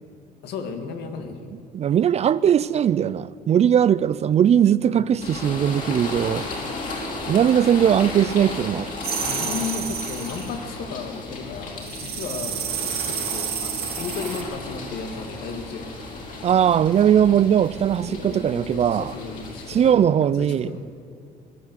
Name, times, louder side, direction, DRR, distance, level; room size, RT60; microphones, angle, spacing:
voice 1, 0.4-1.6 4.9-5.2 9.0-15.9 18.0-20.8, left 5 dB, 75° left, 1.8 m, -34 dB
voice 2, 1.7-6.5 7.3-8.9 16.4-19.1 19.7-20.7, right 9 dB, 40° right, 0.4 m, -19 dB
sound 1, 5.2-19.9, left 2 dB, 50° left, 3.8 m, -34 dB
sound 2, 9.0-10.5 11.8-14.4, right 8 dB, 70° right, 2.1 m, -30 dB
17.0 x 11.0 x 7.8 m
cardioid pair, 110°, 17 cm